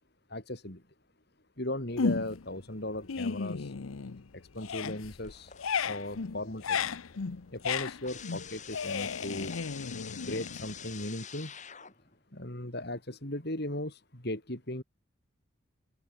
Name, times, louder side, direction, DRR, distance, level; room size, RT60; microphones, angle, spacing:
voice 1, 0.3-0.8 1.6-3.7 4.3-5.5 5.9-6.8 7.5-9.5 10.3-11.5 12.3-14.8, left 1 dB, 50° left, 4.3 m, -37 dB
sound 1, 2.0-2.5 2.9-4.3 4.5-11.1, left 5 dB, 85° left, 0.7 m, -34 dB
sound 2, 5.2-6.0 6.4-12.2, left 8 dB, 35° left, 7.0 m, -47 dB
open air
head